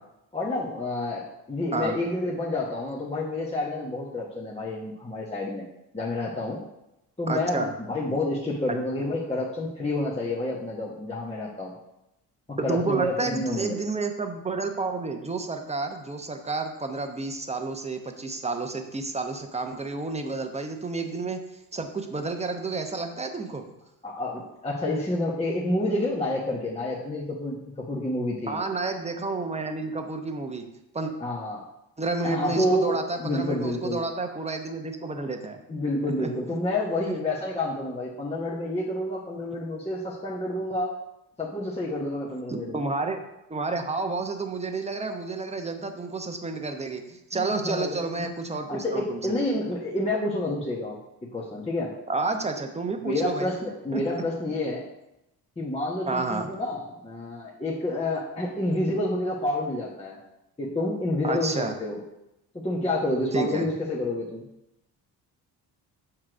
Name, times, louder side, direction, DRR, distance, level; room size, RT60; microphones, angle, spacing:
voice 1, 0.3-5.6 5.9-6.6 7.2-11.7 12.5-13.7 24.0-28.6 31.2-31.6 32.2-34.0 35.7-40.9 41.4-42.8 47.3-48.3 48.7-51.9 53.0-54.8 55.6-60.2 60.6-62.0 62.5-64.5, left 1 dB, 15° left, -5 dB, 1.3 m, -29 dB
voice 2, 7.3-7.7 12.6-21.4 21.7-23.6 28.5-30.6 30.9-31.1 32.0-35.6 36.0-36.6 37.0-37.2 42.5-43.2 43.5-49.2 52.1-53.6 53.9-54.0 56.1-56.5 61.2-61.7 63.3-63.6, right 3 dB, 15° right, 5 dB, 0.9 m, -30 dB
7.2 x 3.2 x 6.1 m, 0.89 s
cardioid pair, 90°, 40 cm